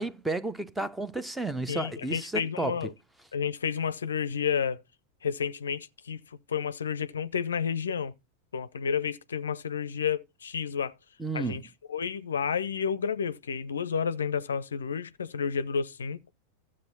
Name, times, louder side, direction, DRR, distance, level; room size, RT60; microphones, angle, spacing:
voice 1, 0.0-2.8 11.2-11.6, right 2 dB, 5° right, 0.7 m, -32 dB
voice 2, 1.7-2.9 3.3-4.8 5.2-6.2 6.5-8.1 8.5-10.9 11.3-11.6 11.9-16.2, left 7 dB, 70° left, 0.5 m, -31 dB
13.5 x 7.5 x 4.1 m
figure-of-eight pair, 90°, 0 cm